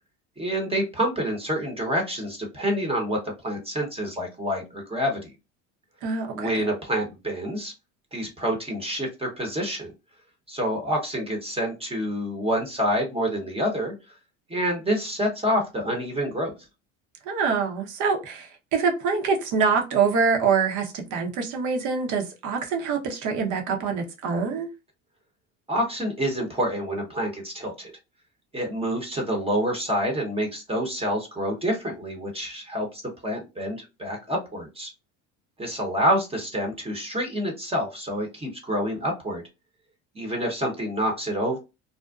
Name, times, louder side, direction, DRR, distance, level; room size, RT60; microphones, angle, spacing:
voice 1, 0.4-5.3 6.3-7.7 8.1-9.9 10.5-13.9 14.5-16.6 25.7-27.9 28.5-34.9 35.6-39.4 40.1-41.6, equal, 15° right, 0.8 m, -27 dB
voice 2, 6.0-6.5 17.3-24.7, right 5 dB, 60° right, 0.9 m, -25 dB
2.5 x 2.1 x 2.3 m
supercardioid pair, 95°, 34 cm